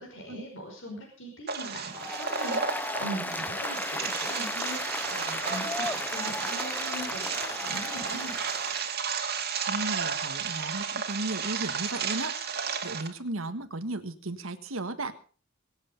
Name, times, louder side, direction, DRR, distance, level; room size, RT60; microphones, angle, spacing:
voice 1, 0.0-4.8 5.1-8.3, right 1 dB, 65° left, 0 dB, 5.2 m, -41 dB
sound 1, 1.5-13.1, right 6 dB, 50° right, 2.1 m, -33 dB
Applause, 1.9-8.9, left 2 dB, 10° left, 0.6 m, -35 dB
voice 2, 9.6-15.1, right 2 dB, 90° right, 7 dB, 1.5 m, -35 dB
23.5 x 8.2 x 5.3 m, 0.40 s
head